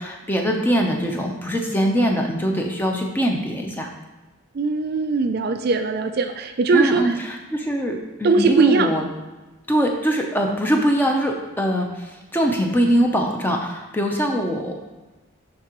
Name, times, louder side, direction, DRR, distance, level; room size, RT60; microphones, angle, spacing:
voice 1, 0.0-3.9 6.7-9.1 9.7-14.7, equal, 10° left, 1 dB, 0.6 m, -22 dB
voice 2, 4.5-7.2 8.2-8.9, right 4 dB, 50° right, 7 dB, 0.4 m, -20 dB
11.0 x 3.6 x 3.0 m, 1.2 s
head